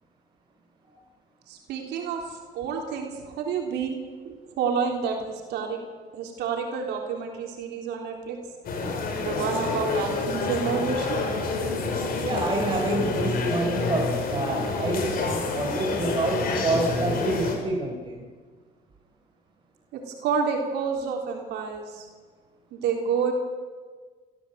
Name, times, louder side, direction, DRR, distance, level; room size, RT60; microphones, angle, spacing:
voice 1, 1.5-4.0 4.2-5.8 6.1-8.4 9.2-11.2 19.9-22.1 22.7-23.3, right 6 dB, 80° right, 2 dB, 3.5 m, -29 dB
sound 1, 8.6-17.6, left 3 dB, 60° left, 5.5 m, -28 dB
voice 2, 12.2-18.2, right 2 dB, 30° right, 0 dB, 4.0 m, -28 dB
28.0 x 14.5 x 8.0 m, 1.5 s
cardioid pair, 110°, 17 cm